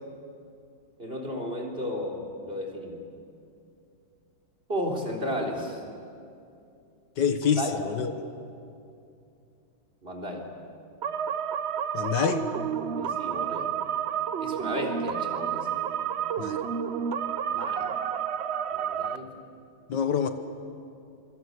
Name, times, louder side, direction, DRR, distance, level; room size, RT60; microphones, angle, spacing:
voice 1, 1.0-3.0 4.7-5.8 7.6-7.7 10.0-10.4 13.0-13.7 14.4-15.7 17.5-17.9 18.7-19.3, equal, 30° right, 2 dB, 3.9 m, -33 dB
voice 2, 7.2-8.1 11.9-12.4 16.4-16.6 19.9-20.3, left 7 dB, 70° left, 8 dB, 1.8 m, -26 dB
sound 1, 11.0-19.2, right 8 dB, 65° right, 0.6 m, -30 dB
26.5 x 24.5 x 8.1 m, 2.5 s
omnidirectional pair, 2.0 m